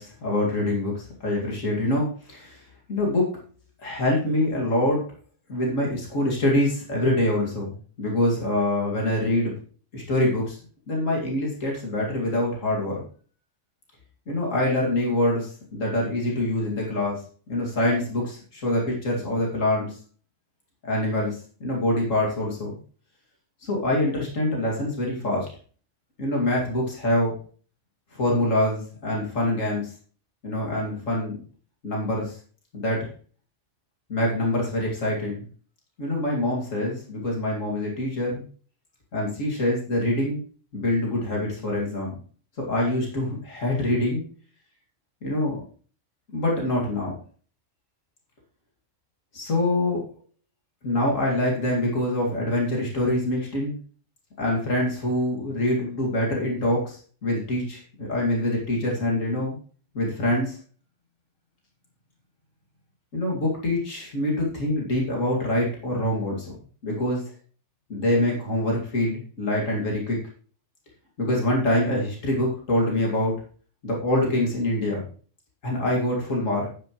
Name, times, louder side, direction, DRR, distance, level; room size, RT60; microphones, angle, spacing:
voice 1, 0.0-2.6 2.9-3.3 3.8-5.0 5.5-7.7 8.0-9.6 9.9-10.6 10.9-13.0 14.3-17.2 17.5-20.0 20.8-22.7 23.6-25.5 26.2-27.4 28.1-29.9 30.4-31.4 31.8-32.3 32.7-33.1 34.1-35.4 36.0-38.4 39.1-40.4 40.7-42.1 42.7-44.2 45.2-45.6 46.3-47.2 49.3-50.0 50.8-53.8 54.4-59.6 59.9-60.6 63.1-66.6 66.8-67.3 67.9-70.2 71.2-73.3 73.8-75.0 75.6-76.7, left 1 dB, 90° left, -2 dB, 2.8 m, -25 dB
9.8 x 9.5 x 3.1 m, 0.41 s
omnidirectional pair, 1.3 m